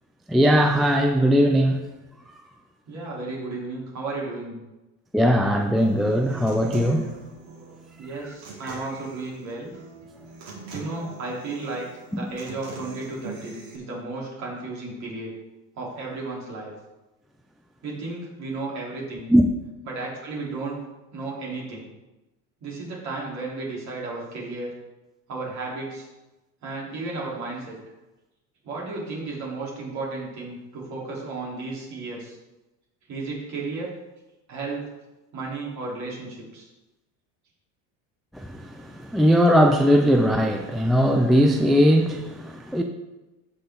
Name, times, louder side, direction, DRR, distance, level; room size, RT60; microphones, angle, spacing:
voice 1, 0.3-1.8 5.1-7.1 12.1-12.3 19.3-19.5 38.3-42.8, equal, ahead, 4 dB, 0.4 m, -19 dB
voice 2, 2.9-4.6 8.0-9.7 10.7-15.3 15.7-16.7 17.8-19.3 19.8-20.8 21.1-21.9 22.6-24.7 25.3-26.1 26.6-27.8 28.6-32.4 33.1-33.9 34.5-34.8 35.3-36.7, right 3 dB, 45° right, -4 dB, 3.8 m, -33 dB
Human voice / Acoustic guitar, 5.8-13.8, right 3 dB, 70° right, 2.9 m, -42 dB
15.5 x 5.9 x 3.9 m, 1.1 s
cardioid pair, 140°, 38 cm